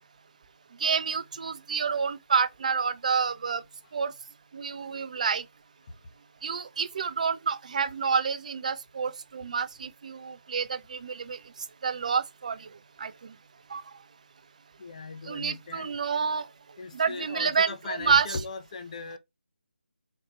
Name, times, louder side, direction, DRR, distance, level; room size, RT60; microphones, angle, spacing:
voice 1, 0.8-3.6 3.9-4.1 4.5-5.4 6.4-11.4 11.8-12.6 13.0-13.1 13.7-13.8 15.3-16.4 16.9-18.3, right 5 dB, 35° right, 0.3 m, -28 dB
voice 2, 14.8-15.9 16.8-19.2, left 4 dB, 35° left, 0.8 m, -38 dB
4.1 x 2.8 x 3.0 m
figure-of-eight pair, 155°, 6 cm